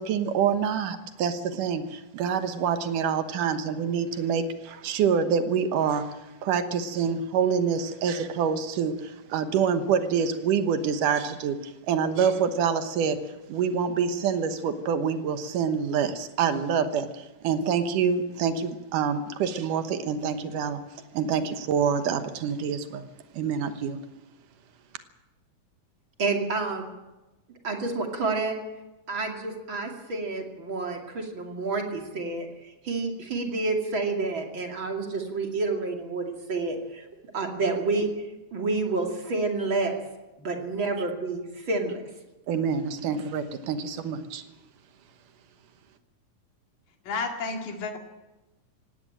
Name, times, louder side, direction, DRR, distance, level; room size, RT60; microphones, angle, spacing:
voice 1, 0.0-11.6 11.9-13.2 13.5-20.8 21.1-23.0 23.3-24.0 42.5-44.4, right 7 dB, 80° right, 9 dB, 2.7 m, -26 dB
voice 2, 26.2-26.9 27.6-28.6 29.1-32.5 32.8-37.0 37.3-38.1 38.5-40.0 40.4-42.0, right 3 dB, 40° right, 2 dB, 3.0 m, -29 dB
voice 3, 47.1-48.0, left 4 dB, 90° left, 3 dB, 3.9 m, -31 dB
18.0 x 17.0 x 8.9 m, 1.0 s
omnidirectional pair, 3.7 m